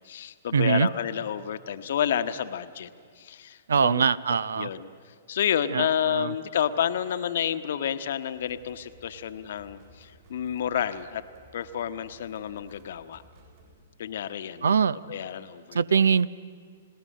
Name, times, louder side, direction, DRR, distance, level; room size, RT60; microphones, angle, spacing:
voice 1, 0.0-2.9 3.2-4.0 4.6-11.2 11.5-13.2 14.0-14.8 15.1-15.8, left 9 dB, 55° left, 11 dB, 1.0 m, -30 dB
voice 2, 0.5-0.9 3.7-4.7 5.7-6.3 14.6-15.0 15.7-16.3, right 6 dB, 70° right, 21 dB, 0.6 m, -23 dB
sound 1, 8.3-13.8, right 1 dB, 50° right, 7.5 m, -55 dB
29.0 x 18.5 x 6.5 m, 2.1 s
figure-of-eight pair, 115°, 0 cm